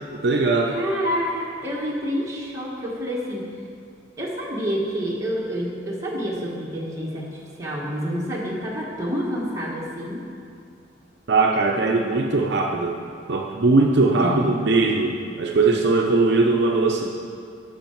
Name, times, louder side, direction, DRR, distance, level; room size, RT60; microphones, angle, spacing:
voice 1, 0.1-0.7 11.3-13.0 13.3-17.1, right 3 dB, 60° right, 0 dB, 0.7 m, -20 dB
voice 2, 0.7-3.5 4.2-10.2 14.2-14.5, equal, 15° right, -5 dB, 1.6 m, -28 dB
12.5 x 5.7 x 4.6 m, 2.4 s
head